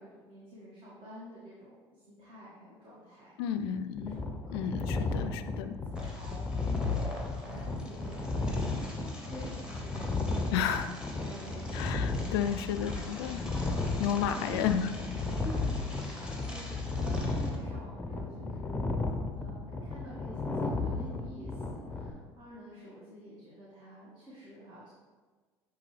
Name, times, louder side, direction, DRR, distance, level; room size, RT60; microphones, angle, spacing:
voice 1, 0.0-3.7 4.0-5.4 6.0-12.3 13.9-14.7 15.2-19.0 19.4-24.9, equal, 35° right, -8 dB, 2.0 m, -49 dB
voice 2, 3.4-4.2 4.5-5.7 10.5-10.9 11.7-13.4 14.0-14.9, left 8 dB, 70° left, 10 dB, 0.4 m, -32 dB
sound 1, 4.0-22.1, left 3 dB, 10° left, 0.8 m, -34 dB
sound 2, 5.9-17.6, left 1 dB, 5° right, 1.6 m, -47 dB
9.8 x 3.6 x 3.3 m, 1.4 s
hypercardioid pair, 65°, 14 cm